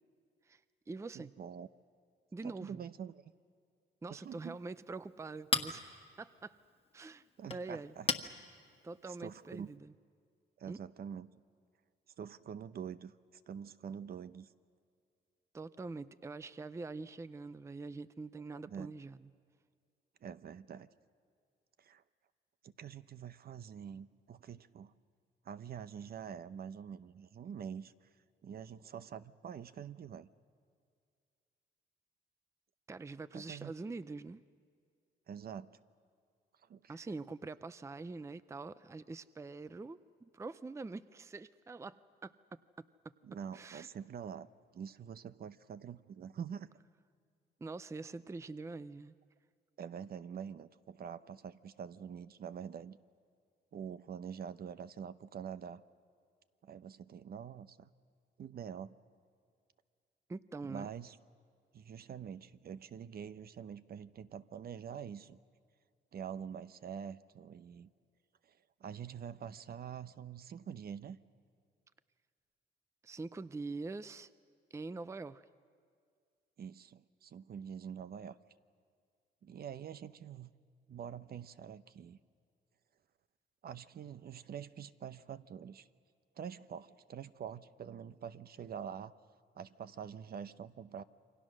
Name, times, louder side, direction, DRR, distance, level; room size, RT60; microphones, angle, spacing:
voice 1, 0.4-1.3 2.3-2.9 4.0-6.6 6.9-7.9 8.8-9.9 10.6-10.8 15.5-19.3 32.9-34.4 36.9-42.3 42.8-42.9 43.5-43.9 47.6-49.1 60.3-60.9 73.0-74.3 74.7-75.4, right 3 dB, 15° right, 15 dB, 0.5 m, -44 dB
voice 2, 1.1-1.7 2.4-3.3 4.1-4.6 7.4-8.1 9.1-9.7 10.6-11.3 12.2-13.1 13.5-14.5 18.7-18.9 20.2-20.9 21.8-22.0 22.6-24.9 25.4-27.9 28.4-30.3 33.3-33.7 35.3-35.7 36.7-37.0 43.2-46.7 49.8-53.0 53.7-55.8 56.6-57.9 58.4-59.0 60.6-61.1 61.7-65.4 66.1-67.9 68.5-71.2 76.6-78.4 79.4-80.5 80.9-82.2 83.6-85.9 86.4-89.1 89.6-91.0, right 8 dB, 50° right, 13 dB, 0.7 m, -46 dB
Chink clink, 4.2-9.8, left 4 dB, 30° left, 1.5 m, -41 dB
28.5 x 24.0 x 6.3 m, 2.2 s
cardioid pair, 90°, 20 cm